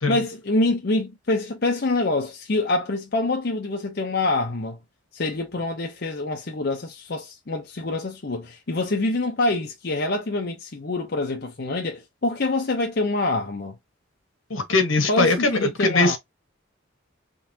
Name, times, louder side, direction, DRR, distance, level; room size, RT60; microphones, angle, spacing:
voice 1, 0.1-4.8 5.1-13.8 15.1-16.2, left 2 dB, 50° left, 0.7 m, -25 dB
voice 2, 14.5-16.2, left 3 dB, 80° left, 1.4 m, -21 dB
3.9 x 3.6 x 2.8 m
head